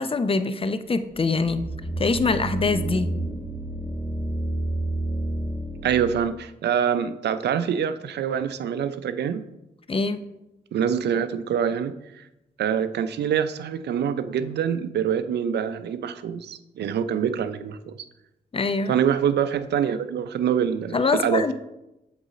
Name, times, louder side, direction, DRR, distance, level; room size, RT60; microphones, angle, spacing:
voice 1, 0.0-1.7 2.0-3.2 9.9-10.2 18.5-19.0 20.9-21.5, left 4 dB, 35° left, 11 dB, 0.6 m, -24 dB
sound 1, 1.2-6.3, right 2 dB, 20° right, 1.7 m, -30 dB
voice 2, 5.8-9.4 10.7-12.2 12.6-18.0 18.9-21.5, right 8 dB, 80° right, 12 dB, 0.5 m, -25 dB
7.3 x 4.0 x 4.1 m, 0.91 s
cardioid pair, 55°, 17 cm